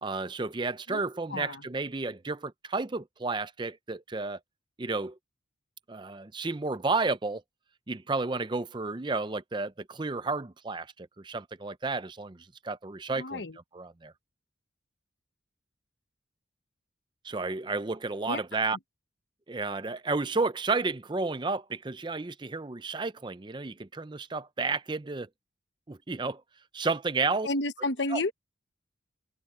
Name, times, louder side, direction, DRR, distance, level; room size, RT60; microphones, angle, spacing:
voice 1, 0.0-4.4 4.8-5.2 5.9-7.4 7.9-13.4 13.7-14.1 17.2-18.8 19.5-25.3 25.9-26.4 26.7-27.5 28.1-28.2, right 3 dB, 25° right, 0.5 m, -32 dB
voice 2, 1.3-1.6 13.2-13.5 18.3-18.4 27.4-28.3, left 2 dB, 65° left, 1.2 m, -31 dB
head